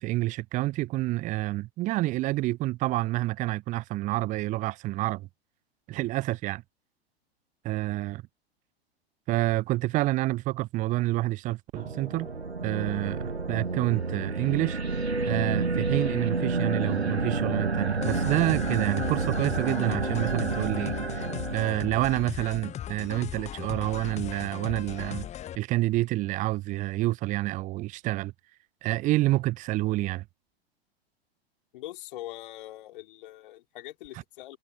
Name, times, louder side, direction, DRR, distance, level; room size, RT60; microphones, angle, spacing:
voice 1, 0.0-5.3 5.9-6.6 7.6-8.2 9.3-12.3 12.6-14.8 15.3-21.2 21.5-25.3 25.6-28.3 28.8-30.2, right 17 dB, 25° right, 0.6 m, -28 dB
sound 1, 11.8-22.3, right 3 dB, 85° right, 1.5 m, -29 dB
sound 2, 18.0-25.6, left 11 dB, 20° left, 1.2 m, -38 dB
voice 2, 31.7-34.6, left 15 dB, 55° left, 5.0 m, -42 dB
figure-of-eight pair, 95°, 31 cm